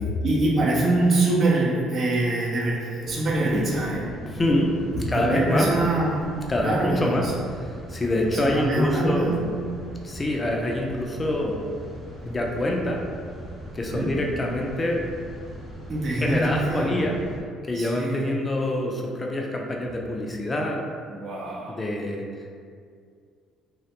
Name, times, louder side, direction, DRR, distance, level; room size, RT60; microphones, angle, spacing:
voice 1, 0.0-4.1 4.9-6.3 6.6-7.3 8.3-9.4 13.9-14.1 15.9-17.0 17.8-18.2 21.1-21.7, right 2 dB, 50° right, -4 dB, 0.6 m, -24 dB
sound 1, 3.0-17.4, equal, 15° right, 0.9 m, -40 dB
voice 2, 4.3-5.8 6.5-9.4 10.0-11.6 12.2-13.1 13.7-15.1 16.1-17.2 17.6-20.9 21.7-22.3, left 1 dB, 25° left, 0 dB, 0.4 m, -26 dB
2.3 x 2.0 x 2.9 m, 2.2 s
hypercardioid pair, 65°, 0 cm